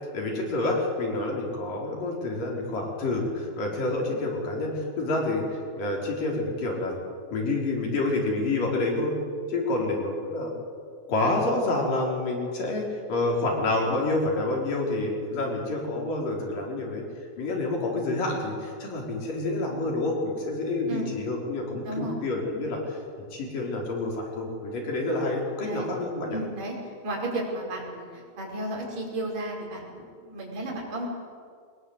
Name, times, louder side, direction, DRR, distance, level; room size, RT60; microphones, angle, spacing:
voice 1, 0.1-7.0 7.3-9.2 9.5-10.5 11.1-17.0 17.4-23.0 23.3-26.4, left 2 dB, 55° left, -1 dB, 5.9 m, -28 dB
voice 2, 21.8-22.2 25.6-25.9 26.3-26.7 27.0-31.1, right 1 dB, 40° right, -2 dB, 6.3 m, -33 dB
23.5 x 20.5 x 8.2 m, 2.1 s
omnidirectional pair, 4.7 m